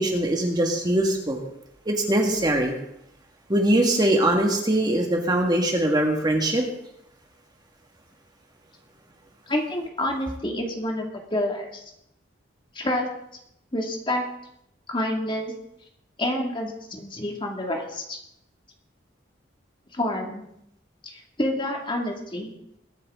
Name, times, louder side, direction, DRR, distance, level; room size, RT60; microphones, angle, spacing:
voice 1, 0.0-1.4 1.8-2.7 3.5-6.6, right 1 dB, 20° right, 2 dB, 1.7 m, -22 dB
voice 2, 9.5-11.8 12.7-13.1 13.7-14.2 14.9-15.5 16.2-18.2 19.9-20.4 21.1-22.5, left 1 dB, 25° left, 1 dB, 2.1 m, -28 dB
22.0 x 9.7 x 3.7 m, 0.78 s
head